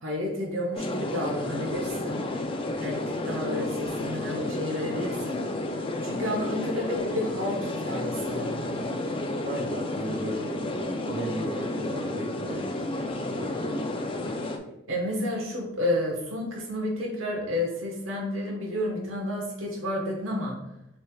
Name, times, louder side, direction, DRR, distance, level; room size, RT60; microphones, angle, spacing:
voice 1, 0.0-2.3 2.8-5.4 6.0-8.7 14.9-20.5, left 1 dB, 75° right, 0 dB, 1.3 m, -31 dB
sound 1, 0.7-14.6, left 1 dB, 25° left, 0.4 m, -31 dB
voice 2, 9.4-13.8, right 1 dB, 40° right, -1 dB, 0.4 m, -36 dB
6.3 x 3.3 x 2.3 m, 0.84 s
head